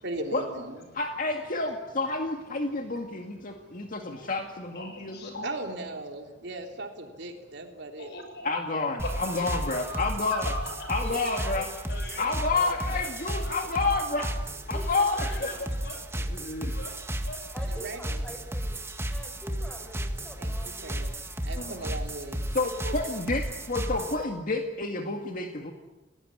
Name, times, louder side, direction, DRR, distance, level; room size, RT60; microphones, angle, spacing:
voice 1, 0.0-0.9 5.4-8.1 17.6-18.3 20.4-21.1 21.4-22.4 22.8-22.9, right 2 dB, 65° right, 3 dB, 3.6 m, -38 dB
voice 2, 0.9-5.3 8.4-10.5 10.9-11.7 12.2-14.3 14.7-15.5 16.3-16.7 21.6-21.9 22.5-25.7, left 3 dB, 50° left, 3 dB, 2.1 m, -29 dB
voice 3, 2.7-4.4 4.7-5.6 6.3-6.5 7.7-8.5 9.0-9.4 9.6-10.9 11.9-13.7 15.2-16.2 16.6-17.5, left 1 dB, 65° left, 5 dB, 7.3 m, -42 dB
sound 1, 9.0-24.2, right 1 dB, 15° right, 1.9 m, -33 dB
voice 4, 11.0-11.7 14.7-15.5 17.5-18.8 19.1-20.9, equal, 5° left, 3 dB, 6.4 m, -44 dB
29.5 x 18.5 x 10.0 m, 1.2 s
head